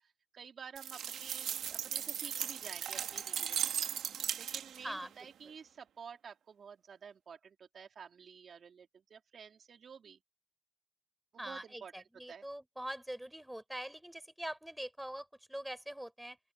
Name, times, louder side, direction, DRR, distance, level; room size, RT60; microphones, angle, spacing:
voice 1, 0.0-3.8 4.4-10.2 11.3-11.9 12.3-12.4, right 6 dB, 50° right, 3.6 m, -51 dB
sound 1, 0.8-4.9, right 9 dB, 70° right, 2.3 m, -37 dB
voice 2, 11.4-16.4, right 1 dB, 5° right, 4.6 m, -43 dB
open air
cardioid pair, 90°, 0 cm